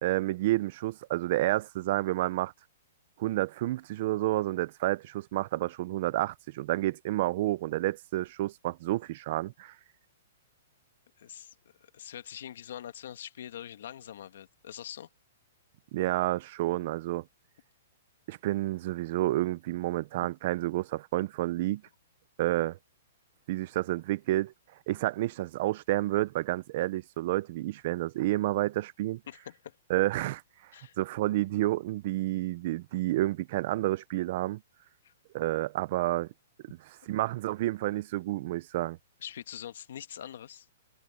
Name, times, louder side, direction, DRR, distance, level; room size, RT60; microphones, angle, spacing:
voice 1, 0.0-2.5 3.2-9.7 15.9-17.2 18.3-21.8 22.4-22.8 23.5-24.5 24.9-29.2 29.9-30.4 31.0-34.6 35.3-36.3 36.9-39.0, right 16 dB, 40° right, 0.5 m, -30 dB
voice 2, 11.2-11.5 11.8-15.1 20.2-20.3 29.3-29.8 30.7-31.0 35.0-35.1 39.2-40.7, left 10 dB, 60° left, 1.6 m, -44 dB
hypercardioid pair, 170°, 0 cm